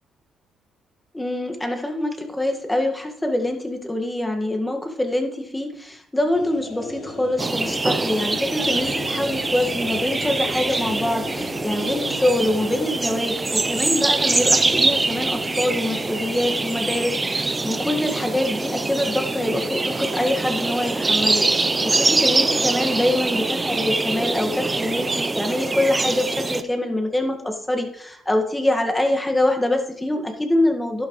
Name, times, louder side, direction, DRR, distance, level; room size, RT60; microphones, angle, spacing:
voice 1, 1.1-21.5 21.8-31.1, left 1 dB, 10° left, 3 dB, 1.8 m, -24 dB
sound 1, 6.3-16.8, left 3 dB, 75° left, 5.2 m, -38 dB
sound 2, 7.4-26.6, right 3 dB, 20° right, 0.7 m, -24 dB
12.5 x 11.0 x 3.2 m, 0.73 s
cardioid pair, 90°, 0 cm